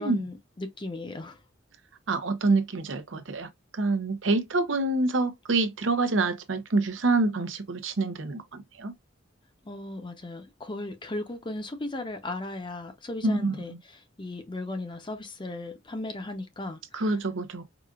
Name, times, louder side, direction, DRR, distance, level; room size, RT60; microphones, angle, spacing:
voice 1, 0.0-1.4 9.6-17.2, left 2 dB, 25° left, 0.7 m, -37 dB
voice 2, 2.1-8.9 13.2-13.7 16.9-17.6, right 3 dB, 75° right, 0.7 m, -27 dB
4.9 x 2.4 x 2.4 m
head